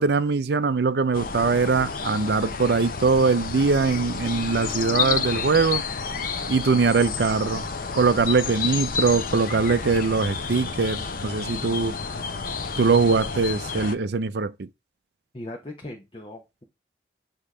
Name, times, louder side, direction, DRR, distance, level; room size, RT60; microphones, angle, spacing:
voice 1, 0.0-5.8 6.5-7.7 7.9-12.0 12.8-14.7, right 4 dB, 60° right, 0.5 m, -22 dB
sound 1, 1.1-14.0, left 5 dB, 50° left, 0.6 m, -30 dB
voice 2, 15.3-16.6, left 1 dB, 30° left, 0.9 m, -39 dB
8.7 x 2.9 x 4.8 m
head